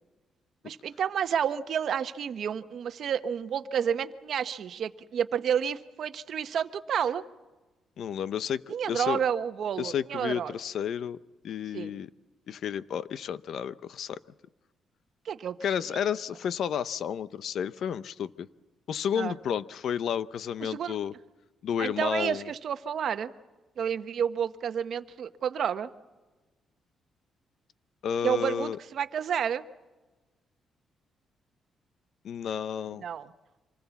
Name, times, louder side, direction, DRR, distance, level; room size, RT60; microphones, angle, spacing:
voice 1, 0.6-7.2 8.7-10.5 11.7-11.9 15.2-15.6 19.2-19.3 20.6-21.0 21.8-23.3 23.8-25.9 28.2-29.6 33.0-33.3, right 8 dB, 60° right, 10 dB, 1.0 m, -30 dB
voice 2, 8.0-8.6 8.9-9.2 9.8-11.2 11.4-12.1 12.5-14.2 15.6-18.5 18.9-21.1 21.6-22.5 28.0-28.8 32.2-33.1, left 8 dB, 65° left, 15 dB, 0.7 m, -31 dB
26.0 x 20.0 x 7.1 m, 1.2 s
cardioid pair, 130°, 0 cm